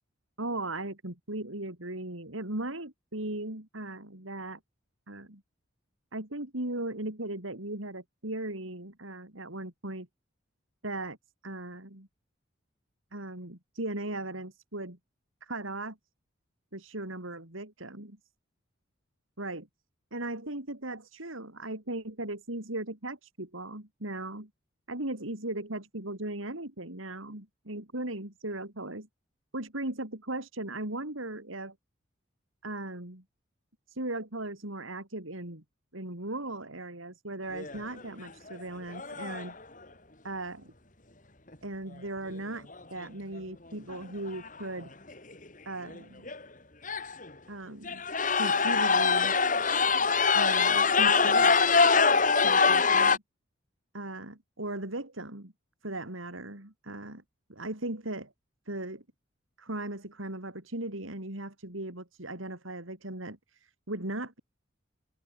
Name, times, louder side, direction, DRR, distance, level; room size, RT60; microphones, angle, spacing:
voice 1, 0.4-4.6 5.1-5.4 6.1-10.1 10.8-11.2 11.4-12.1 13.1-15.0 15.4-16.0 16.7-18.2 19.4-19.7 20.1-24.5 24.9-29.1 29.5-31.7 32.6-33.2 33.9-35.6 35.9-39.5 40.2-40.7 41.6-44.9 45.6-46.3 47.5-48.0 48.4-49.4 50.3-51.9 52.4-53.2 53.9-55.5 55.8-57.2 57.5-58.3 58.7-59.0 59.6-64.4, right 2 dB, 90° right, 5.0 m, -37 dB
sound 1, 37.5-38.0 38.5-38.6 38.9-39.5 42.7-42.8 43.9-44.0 44.3-44.6 45.1-45.2 45.9-46.0 46.3-46.4 46.8-47.3 47.8-53.2, left 5 dB, 40° left, 4.0 m, -24 dB
head